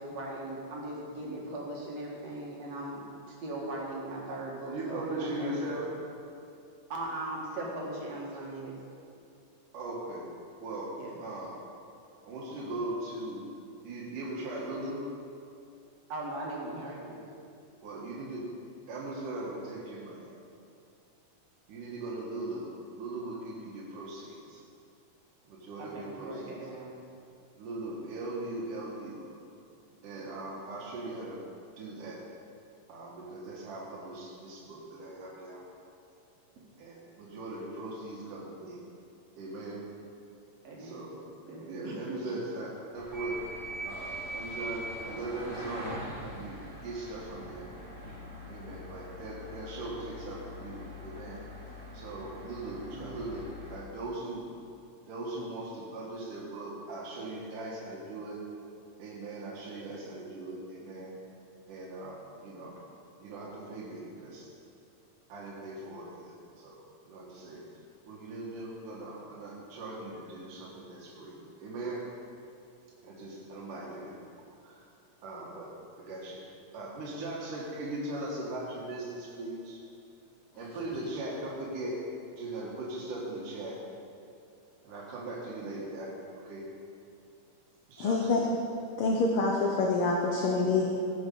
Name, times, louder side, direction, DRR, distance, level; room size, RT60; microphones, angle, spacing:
voice 1, 0.0-5.7 6.9-8.8 11.0-11.2 16.1-17.2 25.8-27.0 40.6-41.1 41.4-42.0 52.9-53.3, right 2 dB, 60° right, -3 dB, 2.8 m, -39 dB
voice 2, 4.7-5.9 9.7-10.3 10.6-11.0 11.2-11.6 12.3-13.5 13.8-15.0 17.8-18.5 18.9-20.3 21.7-24.6 25.5-26.6 27.6-29.3 30.0-31.4 31.8-32.2 32.9-35.6 36.8-38.8 39.4-39.9 40.7-41.2 41.6-43.4 43.8-47.7 48.5-51.4 51.9-54.5 55.1-58.4 59.0-61.1 61.7-62.7 63.2-64.5 65.3-66.8 67.1-67.6 68.1-72.1 73.0-74.3 74.6-74.8 75.2-76.4 76.7-79.8 80.6-82.0 82.3-83.8 84.8-86.7 87.9-88.4, right 2 dB, 85° right, -4 dB, 3.2 m, -39 dB
sound 1, 42.9-53.8, equal, 5° left, 2.9 m, -42 dB
voice 3, 88.0-88.4 89.0-90.9, left 3 dB, 70° left, 0 dB, 1.3 m, -26 dB
15.5 x 7.1 x 5.4 m, 2.5 s
omnidirectional pair, 3.5 m